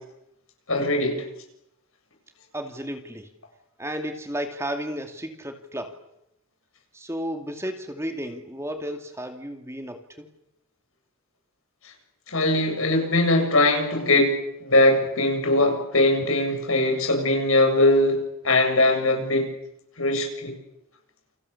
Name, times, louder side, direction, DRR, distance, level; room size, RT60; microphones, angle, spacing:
voice 1, 0.7-1.2 12.3-19.5 20.0-20.5, left 2 dB, 80° left, 4 dB, 7.1 m, -21 dB
voice 2, 2.5-3.3 3.8-6.0 6.9-10.3, equal, 15° right, 5 dB, 2.4 m, -33 dB
29.0 x 27.5 x 7.2 m, 0.83 s
head